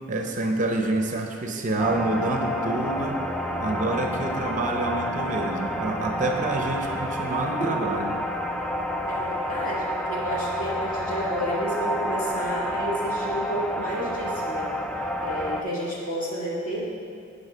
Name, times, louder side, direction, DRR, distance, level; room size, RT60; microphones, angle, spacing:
voice 1, 0.1-3.2 3.6-8.2, right 2 dB, 40° right, 2 dB, 0.6 m, -27 dB
sound 1, 1.8-15.6, equal, 5° left, 0.4 m, -29 dB
voice 2, 9.1-14.7 15.2-16.8, equal, 40° left, -6 dB, 2.0 m, -31 dB
11.0 x 5.1 x 5.0 m, 2.4 s
head